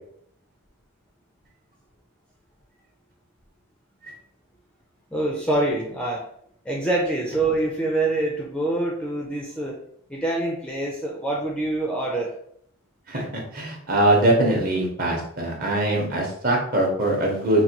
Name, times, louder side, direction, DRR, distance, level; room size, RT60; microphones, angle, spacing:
voice 1, 5.1-6.3 6.7-9.8 10.1-12.3, right 2 dB, 5° left, -2 dB, 0.4 m, -25 dB
voice 2, 13.5-17.6, right 1 dB, 40° right, 0 dB, 0.9 m, -22 dB
3.9 x 2.2 x 2.9 m, 0.68 s
head